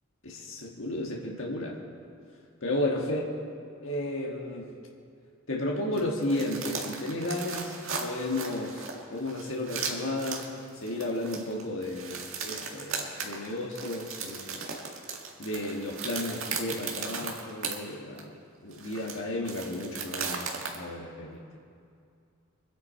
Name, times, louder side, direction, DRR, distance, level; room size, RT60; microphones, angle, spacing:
voice 1, 0.2-1.8 2.6-3.3 3.8-4.6 5.5-7.7 8.0-8.8 9.1-10.4 10.8-14.6 15.4-18.3 18.6-21.4, left 1 dB, 70° left, -1 dB, 1.7 m, -33 dB
sound 1, 5.9-17.8 18.2-18.3 18.7-20.8, right 5 dB, 75° right, 1.9 m, -37 dB
25.0 x 9.9 x 4.4 m, 2.4 s
head